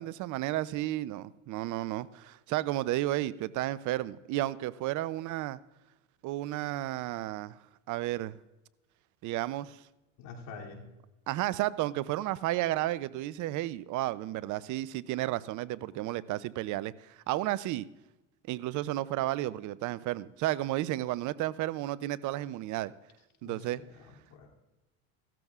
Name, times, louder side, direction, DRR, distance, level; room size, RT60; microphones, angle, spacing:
voice 1, 0.0-5.6 6.2-7.6 7.9-8.4 9.2-9.8 11.3-17.9 18.5-22.9 23.4-23.8, right 15 dB, 55° right, 0.6 m, -32 dB
voice 2, 10.2-10.8 23.4-24.5, left 4 dB, 65° left, 2.9 m, -47 dB
17.0 x 13.5 x 2.4 m
supercardioid pair, 90°, 37 cm